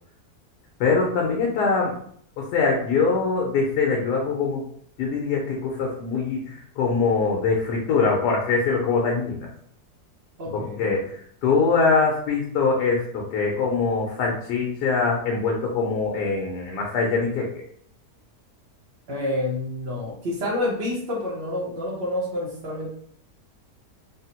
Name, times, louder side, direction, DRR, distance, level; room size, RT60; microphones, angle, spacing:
voice 1, 0.8-1.9 2.4-4.6 5.0-9.5 10.5-11.1 11.4-17.5, left 4 dB, 90° left, -1 dB, 1.2 m, -23 dB
voice 2, 10.4-10.9 19.1-22.9, left 1 dB, 55° right, -5 dB, 0.7 m, -28 dB
3.6 x 2.0 x 2.8 m, 0.63 s
omnidirectional pair, 1.7 m